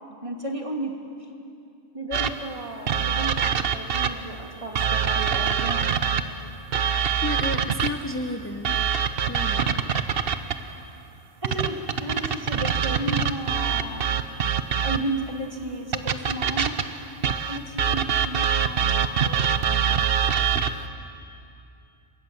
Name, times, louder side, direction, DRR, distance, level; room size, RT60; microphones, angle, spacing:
voice 1, 0.2-1.0 1.9-5.9 11.4-14.2 14.8-16.8 17.5-20.1, right 1 dB, 30° right, 1 dB, 2.8 m, -33 dB
sound 1, 2.1-4.3 4.8-8.1 8.7-10.7 11.4-15.2 15.9-20.9, right 7 dB, 55° right, 1.0 m, -25 dB
voice 2, 7.2-8.8 9.3-9.9, left 2 dB, 10° left, 5 dB, 0.8 m, -32 dB
28.5 x 24.0 x 7.2 m, 2.6 s
omnidirectional pair, 1.2 m